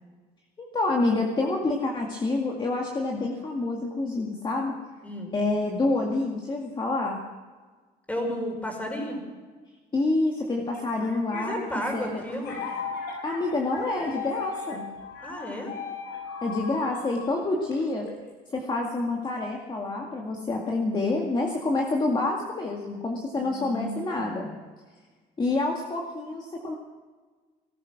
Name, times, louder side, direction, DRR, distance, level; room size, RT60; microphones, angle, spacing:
voice 1, 0.6-4.7 5.3-7.2 9.9-11.6 11.9-12.2 13.2-14.8 16.4-18.1 18.5-24.5 25.4-26.8, left 2 dB, 25° left, 0 dB, 2.1 m, -27 dB
voice 2, 5.0-5.3 8.1-9.2 11.3-12.6 15.2-15.7 23.3-24.5, equal, 10° left, 2 dB, 5.1 m, -33 dB
sound 1, 10.7-18.3, left 5 dB, 75° left, 5.7 m, -37 dB
19.0 x 12.5 x 6.0 m, 1.4 s
cardioid pair, 110°, 17 cm